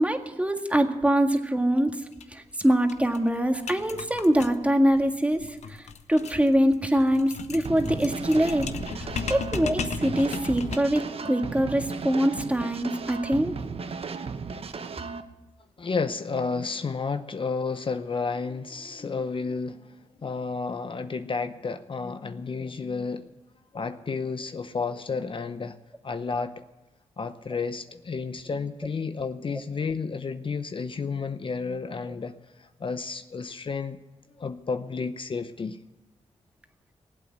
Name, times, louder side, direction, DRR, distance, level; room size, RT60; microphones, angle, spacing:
voice 1, 0.0-1.9 2.3-5.5 6.1-8.7 9.0-13.5, equal, 10° right, 5 dB, 1.7 m, -24 dB
sound 1, 2.1-2.2 2.5-2.6 2.9-11.1, left 6 dB, 75° left, 0.9 m, -37 dB
sound 2, 7.6-15.2, right 5 dB, 55° right, 1.0 m, -36 dB
voice 2, 15.8-23.3 23.7-25.8 26.0-26.6 27.2-34.0 34.4-35.8, left 4 dB, 45° left, 10 dB, 0.7 m, -31 dB
18.5 x 8.4 x 8.1 m, 1.0 s
cardioid pair, 60°, 12 cm